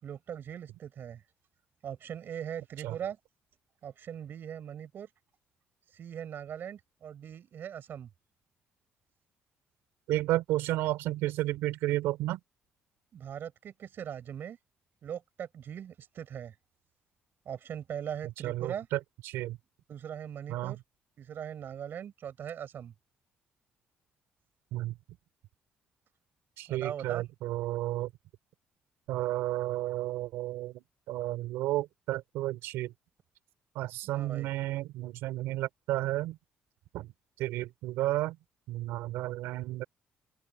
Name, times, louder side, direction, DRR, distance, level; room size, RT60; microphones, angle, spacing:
voice 1, 0.0-1.2 1.8-3.2 3.8-5.1 5.9-8.1 13.1-14.6 15.0-16.5 17.4-18.9 19.9-20.8 21.2-22.9 26.7-27.2 34.1-34.5, right 9 dB, 60° right, 4.9 m, -40 dB
voice 2, 10.1-12.4 18.4-19.6 20.5-20.8 24.7-25.0 26.6-28.1 29.1-32.9 33.7-36.4 36.9-37.1 37.4-38.4 38.7-39.8, right 16 dB, 90° right, 4.6 m, -32 dB
cardioid pair, 75°, 4 cm